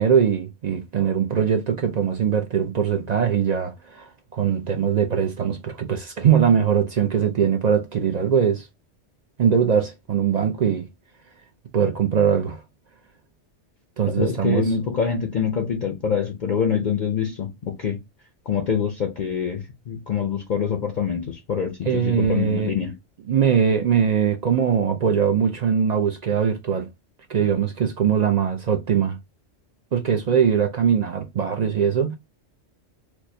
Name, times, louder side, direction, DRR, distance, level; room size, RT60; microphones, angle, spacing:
voice 1, 0.0-8.7 9.4-10.9 11.7-12.6 14.0-14.7 21.8-22.8 23.3-26.9 27.3-29.2 29.9-32.2, right 7 dB, 55° right, 0.5 m, -21 dB
voice 2, 14.2-18.0 18.5-22.9, left 7 dB, 55° left, 0.6 m, -25 dB
4.5 x 2.1 x 2.6 m
omnidirectional pair, 1.2 m